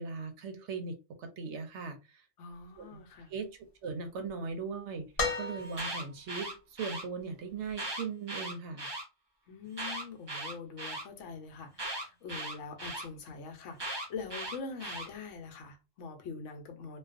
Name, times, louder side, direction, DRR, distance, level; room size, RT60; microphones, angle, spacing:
voice 1, 0.0-2.2 2.8-3.5 3.8-5.1 5.4-6.5 6.8-8.9, right 4 dB, 70° right, 0.8 m, -39 dB
voice 2, 2.4-3.3 9.5-17.0, left 4 dB, 80° left, 0.9 m, -44 dB
sound 1, 5.2-6.2 7.7-7.8, left 3 dB, 50° left, 0.9 m, -34 dB
Alarm, 5.6-7.0 7.7-9.0 9.7-11.0 11.8-13.0 13.8-15.1, right 1 dB, 30° right, 0.5 m, -38 dB
2.3 x 2.2 x 2.4 m
omnidirectional pair, 1.3 m